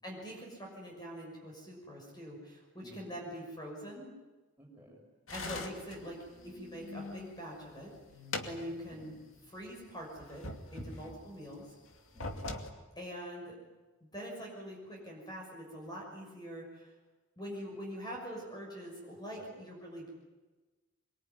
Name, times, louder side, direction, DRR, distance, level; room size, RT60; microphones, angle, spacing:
voice 1, 0.0-4.1 5.3-6.2 6.4-7.9 8.4-9.2 9.5-10.5 10.7-11.7 13.0-13.6 14.0-16.9 17.4-20.1, equal, 20° left, -1 dB, 6.3 m, -44 dB
voice 2, 2.8-3.1 4.6-5.0 8.9-9.2 10.8-11.1 12.1-12.5 19.3-19.6, right 1 dB, 10° right, -2 dB, 6.9 m, -55 dB
sound 1, 5.3-7.4 7.8-9.2 9.5-9.6 10.2-11.4 12.0-12.7, left 2 dB, 70° left, 2.5 m, -42 dB
24.5 x 23.0 x 9.6 m, 1.2 s
head